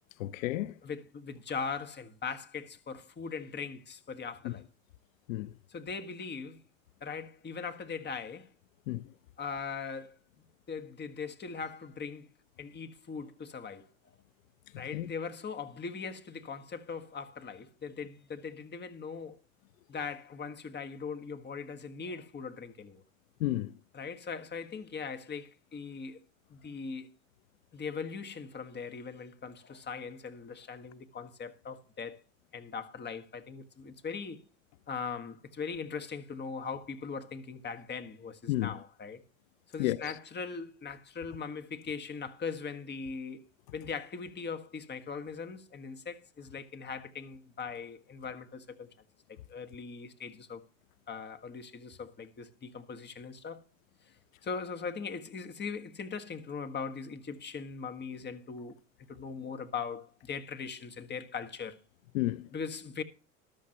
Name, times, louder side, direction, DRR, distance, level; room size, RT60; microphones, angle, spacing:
voice 1, 0.2-0.7 4.4-4.5 5.3-5.5 8.9-9.1 14.9-15.1 23.4-23.7 38.5-38.8 39.8-40.1 62.1-62.5, left 16 dB, 75° left, 0.7 m, -31 dB
voice 2, 0.8-4.6 5.7-6.6 7.0-8.5 9.4-10.1 10.7-12.3 12.6-13.9 14.8-19.4 19.9-23.0 23.9-26.2 26.5-27.1 27.7-32.2 32.5-34.4 34.9-39.2 39.7-43.5 43.7-48.9 49.5-50.6 51.1-53.6 54.4-58.8 59.1-61.8 62.5-63.0, left 5 dB, 25° left, 1.7 m, -40 dB
14.0 x 12.5 x 3.0 m
hypercardioid pair, 95°, 40 cm